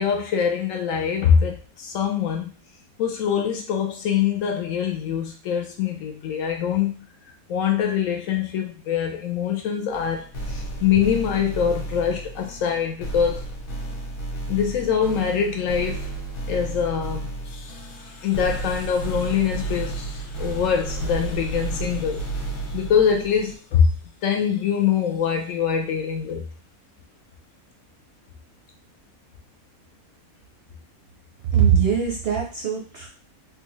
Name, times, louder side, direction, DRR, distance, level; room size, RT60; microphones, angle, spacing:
voice 1, 0.0-2.5 3.0-7.1 7.5-13.4 14.5-16.1 16.5-22.3 22.7-23.9 24.2-26.5, left 8 dB, 70° left, 3 dB, 0.9 m, -24 dB
sound 1, 9.9-23.6, right 2 dB, 40° left, 1.0 m, -32 dB
voice 2, 31.5-33.1, right 8 dB, 60° right, -2 dB, 0.7 m, -21 dB
3.2 x 2.3 x 3.0 m, 0.36 s
omnidirectional pair, 1.5 m